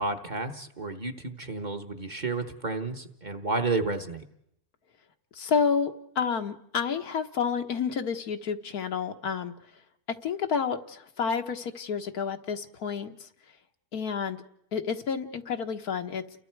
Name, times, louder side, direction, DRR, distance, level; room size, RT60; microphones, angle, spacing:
voice 1, 0.0-4.2, right 3 dB, 35° right, 4 dB, 1.2 m, -31 dB
voice 2, 5.3-9.5 10.2-13.3 13.9-14.4 14.7-16.2, left 6 dB, 80° left, 6 dB, 1.7 m, -30 dB
29.5 x 23.0 x 4.6 m, 0.79 s
omnidirectional pair, 1.6 m